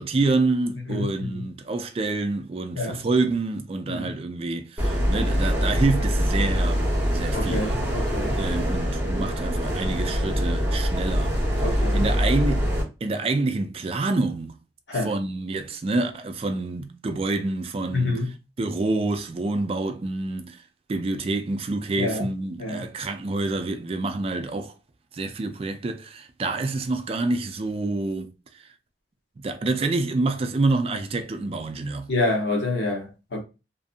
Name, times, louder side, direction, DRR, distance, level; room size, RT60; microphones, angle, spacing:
voice 1, 0.0-7.8 8.3-11.4 11.9-12.7 13.0-14.6 14.9-18.2 18.6-20.6 20.9-24.7 25.1-28.3 29.4-32.1, right 3 dB, 35° right, 0.3 m, -27 dB
voice 2, 0.9-1.5 2.7-3.0 3.9-4.1 7.3-8.4 11.6-12.0 14.9-15.1 17.9-18.3 22.0-22.3 22.6-22.9 32.1-33.4, left 2 dB, 80° left, 0.9 m, -27 dB
sound 1, 4.8-12.8, equal, 10° right, 1.1 m, -24 dB
2.6 x 2.5 x 2.4 m
head